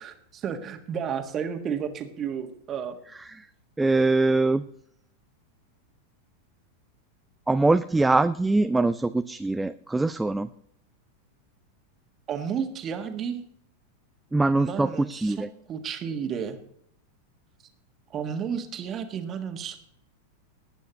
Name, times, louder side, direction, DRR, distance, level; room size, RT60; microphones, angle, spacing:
voice 1, 0.0-3.0 12.3-13.4 14.5-16.6 18.1-19.8, right 7 dB, 30° right, 7 dB, 1.5 m, -32 dB
voice 2, 3.8-4.7 7.5-10.5 14.3-15.5, right 2 dB, 10° right, 12 dB, 0.4 m, -23 dB
19.0 x 9.1 x 3.0 m, 0.70 s
figure-of-eight pair, 90°, 0 cm